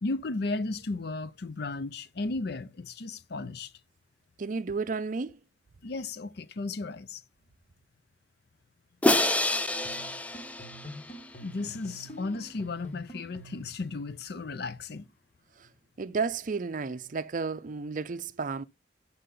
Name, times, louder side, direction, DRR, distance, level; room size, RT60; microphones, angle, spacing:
voice 1, 0.0-3.7 5.8-7.2 11.4-15.1, left 3 dB, 60° left, 0.6 m, -34 dB
voice 2, 4.4-5.4 16.0-18.6, right 4 dB, 45° right, 0.5 m, -32 dB
Crash cymbal, 9.0-11.2, left 1 dB, 10° left, 0.4 m, -27 dB
sound 1, 9.8-13.7, equal, 35° left, 1.5 m, -46 dB
8.2 x 5.7 x 3.8 m
head